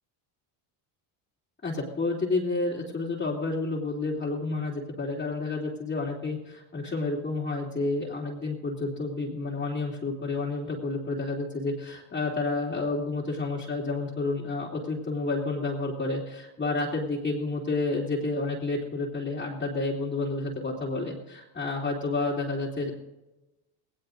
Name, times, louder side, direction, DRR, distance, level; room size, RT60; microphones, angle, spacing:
voice 1, 1.6-22.9, left 3 dB, 20° left, -5 dB, 3.0 m, -30 dB
19.5 x 18.0 x 2.6 m, 1.0 s
cardioid pair, 100°, 50 cm